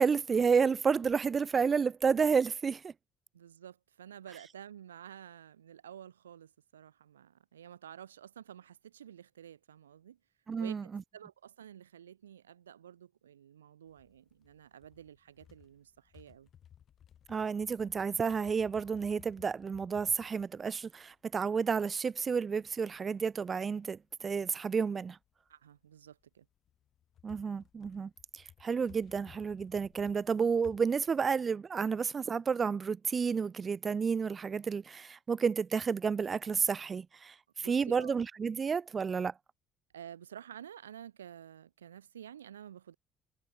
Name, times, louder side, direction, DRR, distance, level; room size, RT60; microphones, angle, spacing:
voice 1, 0.0-2.9 10.5-11.0 17.3-25.2 27.2-39.3, right 6 dB, 35° right, 0.4 m, -31 dB
voice 2, 3.3-10.2 10.6-16.5 25.5-26.5 37.6-38.2 39.9-43.0, right 9 dB, 90° right, 3.2 m, -51 dB
sound 1, 13.9-24.7 25.0-25.8 26.1-30.8, left 9 dB, 50° left, 2.6 m, -60 dB
hypercardioid pair, 55°, 0 cm